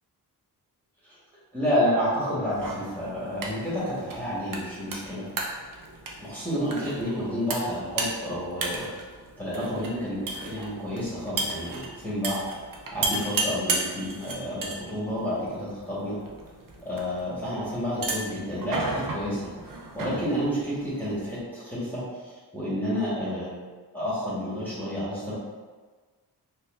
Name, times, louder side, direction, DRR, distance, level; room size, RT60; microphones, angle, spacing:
voice 1, 1.5-5.2 6.2-8.8 9.4-12.4 12.9-16.2 16.8-19.4 19.9-23.5 23.9-25.3, equal, 5° left, -10 dB, 1.3 m, -30 dB
sound 1, 2.5-21.4, right 3 dB, 55° right, 0.6 m, -35 dB
4.1 x 2.4 x 2.5 m, 1.4 s
cardioid pair, 65°, 40 cm